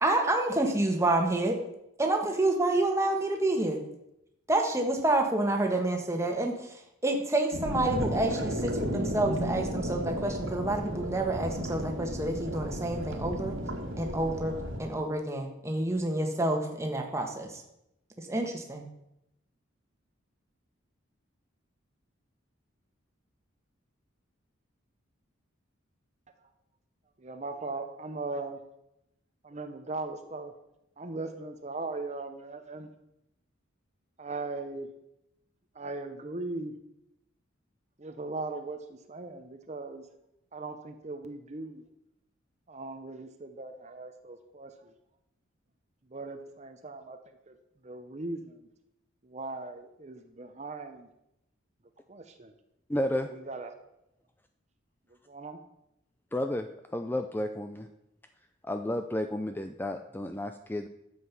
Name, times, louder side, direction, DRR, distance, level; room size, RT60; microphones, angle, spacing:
voice 1, 0.0-1.6 2.0-3.8 4.5-13.5 14.0-17.6 18.2-18.8, right 2 dB, 15° right, 3 dB, 1.4 m, -28 dB
sound 1, 7.5-14.8, equal, 80° right, 1.9 m, -33 dB
voice 2, 27.2-28.6 29.4-30.5 31.0-32.9 34.2-34.9 35.7-36.7 38.0-40.0 40.5-41.8 42.7-44.7 46.1-47.2 47.5-47.6 47.8-48.6 49.2-51.1 52.1-52.5 53.3-53.8 55.3-55.6, right 3 dB, 35° right, 7 dB, 0.7 m, -39 dB
voice 3, 52.9-53.3 56.3-56.7 56.9-57.9 58.6-60.9, left 1 dB, 10° left, 7 dB, 0.4 m, -32 dB
11.5 x 7.6 x 6.0 m, 0.84 s
head